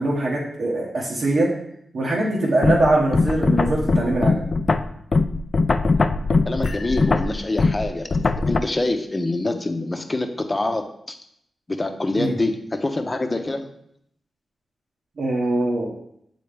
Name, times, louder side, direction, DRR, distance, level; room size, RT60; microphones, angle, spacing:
voice 1, 0.0-1.5 1.9-4.5 12.1-12.3 15.2-15.9, right 2 dB, 70° right, -5 dB, 1.1 m, -22 dB
sound 1, 2.6-8.6, left 3 dB, 50° left, 0.3 m, -21 dB
voice 2, 6.5-8.2 8.5-11.2 11.7-13.7, left 2 dB, 30° left, 5 dB, 0.8 m, -25 dB
6.8 x 4.2 x 3.4 m, 0.73 s
cardioid pair, 45°, 0 cm